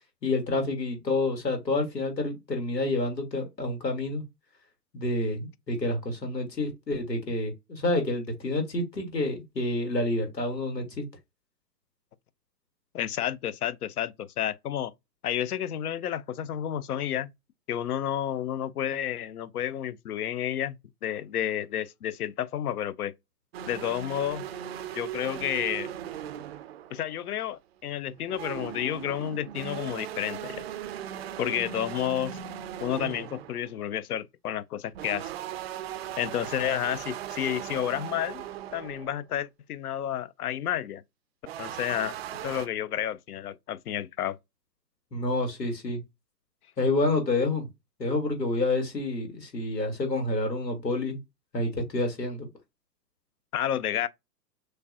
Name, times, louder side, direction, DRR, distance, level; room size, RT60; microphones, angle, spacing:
voice 1, 0.2-4.2 4.9-11.0 45.1-46.0 46.8-47.7 48.0-51.2 51.5-52.5, left 2 dB, 80° left, 1.9 m, -28 dB
voice 2, 12.9-14.9 15.2-17.3 17.7-20.8 21.0-23.1 23.7-24.5 24.9-25.9 26.9-30.6 31.4-32.4 32.8-35.3 36.2-38.4 38.7-41.0 41.6-42.1 42.4-44.4 53.5-54.1, left 10 dB, 65° left, 0.6 m, -31 dB
sound 1, 23.5-27.4 28.1-33.7 34.9-39.2 41.5-42.7, right 10 dB, 40° right, 0.5 m, -38 dB
6.3 x 2.2 x 2.6 m
figure-of-eight pair, 110°, 49 cm